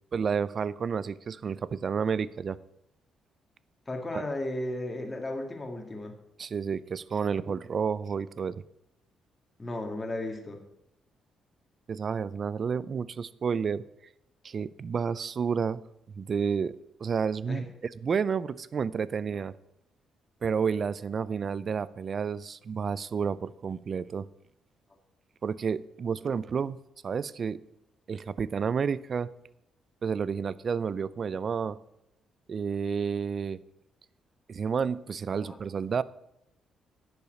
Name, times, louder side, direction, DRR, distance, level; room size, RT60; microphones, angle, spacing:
voice 1, 0.1-2.6 4.1-4.2 6.4-8.5 11.9-13.8 14.4-15.8 16.1-16.7 17.0-17.6 18.0-19.5 20.4-24.3 25.4-26.8 27.0-27.6 28.1-29.3 30.0-31.8 32.5-33.6 34.5-36.0, right 6 dB, 45° right, 19 dB, 0.4 m, -30 dB
voice 2, 3.9-6.1 9.6-10.6 17.5-17.6 35.4-35.6, left 1 dB, 20° left, 3 dB, 1.9 m, -34 dB
10.5 x 5.7 x 8.2 m, 0.83 s
cardioid pair, 90°, 0 cm